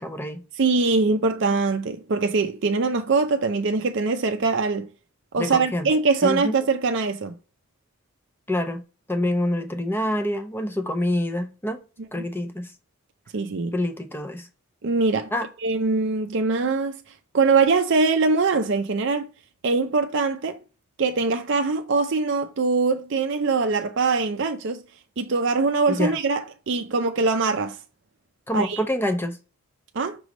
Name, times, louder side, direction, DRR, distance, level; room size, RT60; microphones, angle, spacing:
voice 1, 0.0-0.4 5.4-5.9 6.2-6.6 8.5-8.8 9.1-11.8 12.1-12.7 13.7-14.5 15.3-15.5 25.9-26.1 28.5-29.4, left 1 dB, 10° left, 0.7 m, -26 dB
voice 2, 0.6-4.9 5.3-7.3 12.2-12.3 13.3-13.7 14.8-15.3 15.6-17.0 17.3-19.3 19.6-20.6 21.0-24.8 25.2-27.8 28.5-28.8 29.9-30.2, right 4 dB, 55° right, 0.5 m, -22 dB
6.0 x 3.2 x 5.2 m
head